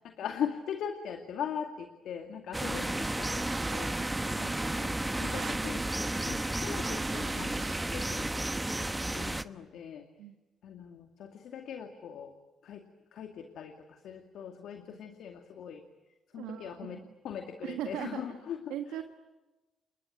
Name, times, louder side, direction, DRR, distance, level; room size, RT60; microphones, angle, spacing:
voice 1, 0.0-4.0 4.7-5.8 6.3-10.1 10.6-12.3 12.6-12.9 13.1-15.8 16.3-19.0, left 8 dB, 75° left, 5 dB, 2.2 m, -40 dB
sound 1, 2.5-9.4, right 1 dB, 15° right, 1.2 m, -32 dB
sound 2, 3.1-8.1, right 6 dB, 50° right, 1.0 m, -47 dB
voice 2, 4.0-4.6 10.2-10.4 14.9-15.0 16.3-17.1 17.6-18.2 18.7-19.0, right 11 dB, 85° right, 5 dB, 1.7 m, -39 dB
30.0 x 20.5 x 9.3 m, 1.1 s
supercardioid pair, 60°, 0 cm